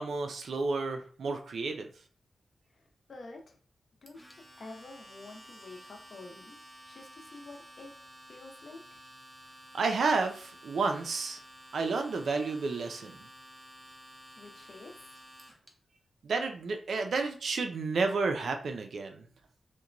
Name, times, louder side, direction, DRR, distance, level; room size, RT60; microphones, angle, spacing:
voice 1, 0.0-1.9 9.7-11.4 11.7-13.3 16.2-19.2, right 4 dB, 70° right, 5 dB, 0.4 m, -31 dB
voice 2, 2.7-3.6 4.0-6.6 6.8-7.9 8.3-9.0 14.4-15.2, left 2 dB, 50° left, 2 dB, 0.6 m, -49 dB
Domestic sounds home sounds, 4.1-15.7, equal, 5° right, 0.5 m, -52 dB
2.9 x 2.1 x 2.5 m, 0.43 s
wide cardioid pair, 140°, 0 cm